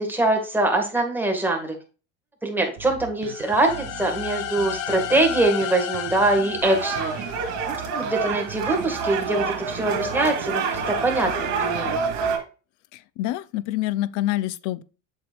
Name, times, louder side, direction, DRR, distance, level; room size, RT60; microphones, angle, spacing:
voice 1, 0.0-1.8 2.4-7.2 7.7-11.3 11.6-12.0, right 2 dB, 5° right, 1.9 m, -23 dB
Bass guitar, 2.8-12.4, right 11 dB, 85° right, 1.0 m, -40 dB
sound 1, 3.2-8.1, left 10 dB, 90° left, 1.2 m, -33 dB
sound 2, 6.6-12.4, right 5 dB, 60° right, 2.7 m, -27 dB
voice 2, 12.9-14.8, left 15 dB, 60° left, 0.6 m, -27 dB
7.8 x 6.5 x 2.5 m
supercardioid pair, 120°, 34 cm